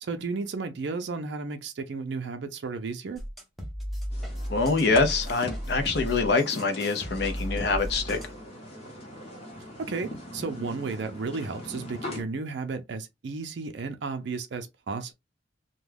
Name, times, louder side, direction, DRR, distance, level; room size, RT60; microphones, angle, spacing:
voice 1, 0.0-3.2 9.8-15.1, right 4 dB, 60° right, 0.4 m, -33 dB
sound 1, 3.2-8.4, equal, ahead, 0.6 m, -35 dB
sound 2, 4.1-12.2, left 1 dB, 30° left, 0.8 m, -41 dB
voice 2, 4.5-8.2, left 3 dB, 55° left, 0.5 m, -25 dB
2.2 x 2.2 x 3.2 m
head